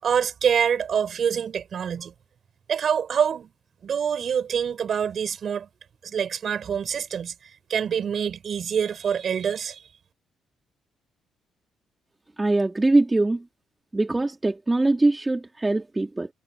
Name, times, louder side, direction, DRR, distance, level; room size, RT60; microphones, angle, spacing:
voice 1, 0.0-2.1 2.7-3.5 3.8-5.7 6.0-7.3 7.7-9.8, right 7 dB, 55° right, 5.9 m, -25 dB
voice 2, 12.4-13.4 13.9-16.3, right 2 dB, 15° right, 3.5 m, -22 dB
cardioid pair, 90°, 0 cm